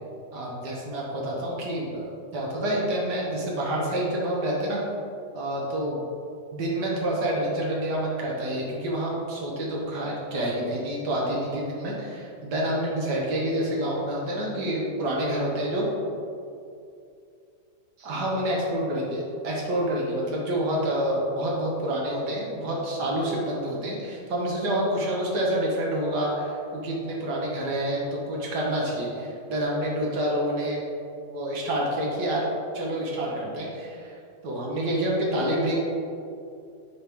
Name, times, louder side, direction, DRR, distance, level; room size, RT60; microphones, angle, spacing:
voice 1, 0.3-4.8 5.3-6.0 6.5-15.9 18.0-30.8 31.3-32.4 32.7-34.1 34.4-35.8, right 1 dB, 80° right, -3 dB, 1.6 m, -28 dB
7.3 x 4.5 x 3.4 m, 2.5 s
omnidirectional pair, 1.8 m